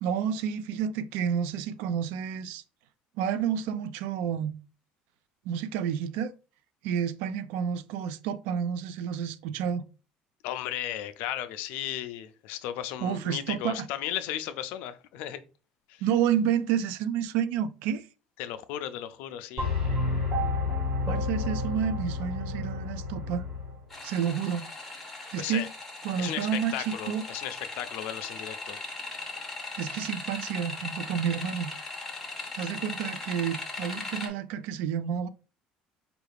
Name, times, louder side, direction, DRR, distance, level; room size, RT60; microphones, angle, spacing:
voice 1, 0.0-2.6 3.2-4.5 5.5-6.3 6.8-9.8 13.0-13.9 16.0-18.1 21.1-23.4 24.0-24.7 25.3-25.7 26.0-27.2 29.8-31.7 32.6-35.3, right 8 dB, 85° right, 0.3 m, -30 dB
voice 2, 10.4-15.4 15.9-16.0 18.4-19.7 25.4-25.7 26.2-28.8, left 11 dB, 70° left, 0.4 m, -35 dB
sound 1, 19.6-23.8, left 3 dB, 30° right, 1.3 m, -30 dB
sound 2, 23.9-34.3, left 3 dB, 5° left, 0.7 m, -39 dB
4.7 x 2.4 x 3.3 m
cardioid pair, 180°, 3 cm